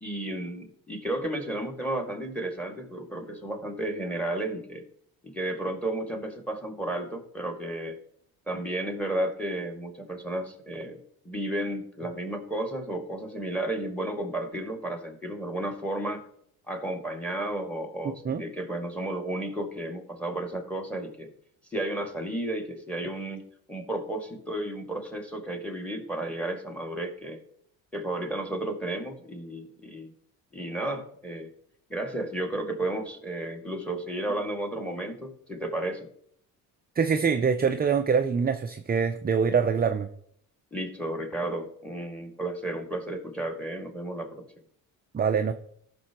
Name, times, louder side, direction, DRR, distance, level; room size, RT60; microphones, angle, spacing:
voice 1, 0.0-4.8 5.2-8.0 8.5-16.2 16.7-21.3 21.7-27.4 27.9-30.1 30.5-31.5 31.9-36.1 40.7-44.5, right 1 dB, 5° left, 4 dB, 2.1 m, -33 dB
voice 2, 37.0-40.1 45.1-45.5, right 6 dB, 20° right, 7 dB, 0.5 m, -24 dB
14.5 x 6.1 x 3.0 m, 0.66 s
supercardioid pair, 65°, 43 cm